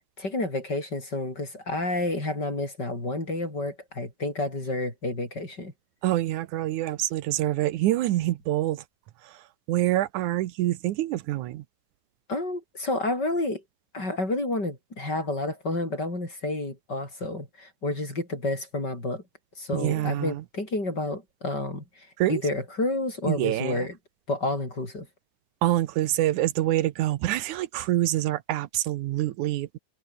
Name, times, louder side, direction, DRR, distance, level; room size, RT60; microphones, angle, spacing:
voice 1, 0.0-5.7 12.3-13.6 13.9-19.2 19.6-24.0 24.3-25.1, left 2 dB, 30° left, 8.2 m, -30 dB
voice 2, 6.0-8.8 9.7-11.6 19.7-20.4 22.2-22.4 23.3-23.9 25.6-29.8, right 15 dB, 80° right, 2.3 m, -26 dB
omnidirectional pair, 3.4 m